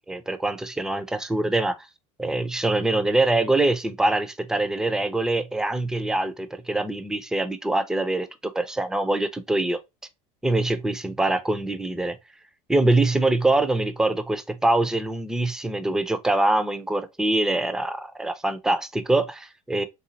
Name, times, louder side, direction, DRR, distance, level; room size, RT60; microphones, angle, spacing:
voice 1, 0.1-1.8 2.2-8.3 8.5-9.8 10.4-12.2 12.7-19.8, right 2 dB, 5° right, 0.5 m, -24 dB
4.0 x 2.3 x 2.7 m
supercardioid pair, 110°, 16 cm